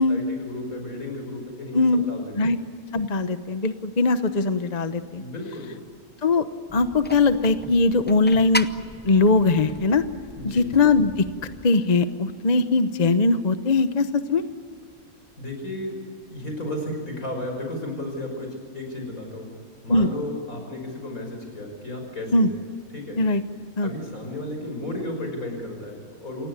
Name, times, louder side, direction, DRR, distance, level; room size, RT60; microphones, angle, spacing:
voice 1, 0.0-2.5 5.2-5.7 10.4-10.7 15.4-16.0 16.3-19.5 19.8-22.5 22.9-23.2 23.8-26.5, left 1 dB, 65° left, 3 dB, 6.3 m, -33 dB
voice 2, 2.9-5.2 6.2-6.5 6.7-8.7 9.0-10.0 10.4-11.3 11.6-14.4 19.9-20.1 22.3-22.5 23.2-23.4 23.8-23.9, left 3 dB, 35° left, 10 dB, 0.9 m, -20 dB
sound 1, 6.7-11.7, left 1 dB, 15° left, 0.4 m, -36 dB
28.0 x 18.0 x 9.8 m, 2.1 s
omnidirectional pair, 1.5 m